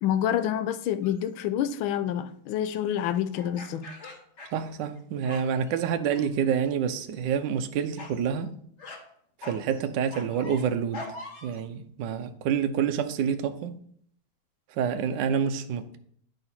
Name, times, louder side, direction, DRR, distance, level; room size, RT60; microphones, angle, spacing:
voice 1, 0.0-3.9, left 10 dB, 80° left, 1.4 m, -27 dB
sound 1, 1.0-1.3 3.3-5.0 5.2-5.8 6.2-6.7 7.0-7.3 8.0-8.2 8.8-9.0 9.4-11.6, left 2 dB, 40° left, 1.5 m, -43 dB
voice 2, 4.5-8.5 9.4-11.1 11.4-13.7 14.8-16.0, right 7 dB, 70° right, 1.2 m, -28 dB
11.5 x 3.9 x 4.2 m
omnidirectional pair, 2.3 m